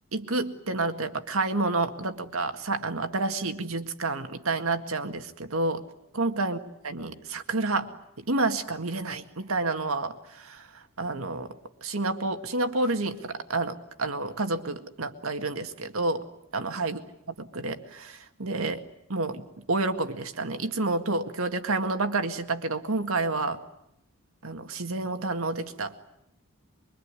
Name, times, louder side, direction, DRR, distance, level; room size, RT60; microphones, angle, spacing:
voice 1, 0.1-5.8 6.1-6.6 6.8-11.6 11.8-16.2 16.5-17.0 17.4-18.8 19.1-23.6 24.4-26.0, right 3 dB, 85° right, 7 dB, 1.9 m, -29 dB
24.0 x 23.5 x 9.8 m, 0.80 s
head